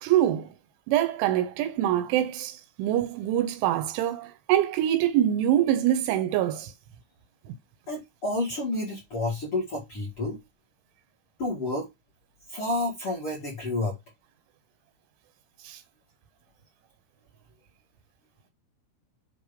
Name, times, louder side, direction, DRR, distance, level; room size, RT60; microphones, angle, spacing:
voice 1, 0.0-0.5 0.9-6.7 15.7-15.8, right 12 dB, 80° right, 3.2 m, -24 dB
voice 2, 7.9-10.4 11.4-11.9 12.5-13.9, left 2 dB, 40° left, 2.1 m, -30 dB
7.7 x 3.4 x 5.2 m
omnidirectional pair, 5.6 m